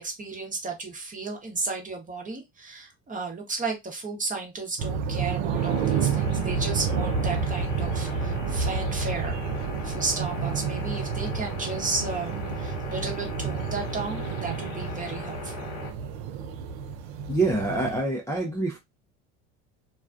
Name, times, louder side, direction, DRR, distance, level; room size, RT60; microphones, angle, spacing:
voice 1, 0.0-15.7, right 3 dB, 20° right, 1.0 m, -34 dB
sound 1, 4.8-18.0, right 6 dB, 70° right, 0.6 m, -30 dB
sound 2, 5.6-15.9, left 5 dB, 85° left, 1.0 m, -39 dB
voice 2, 17.3-18.8, right 2 dB, 10° left, 0.5 m, -26 dB
2.3 x 2.3 x 2.5 m
supercardioid pair, 80°, 36 cm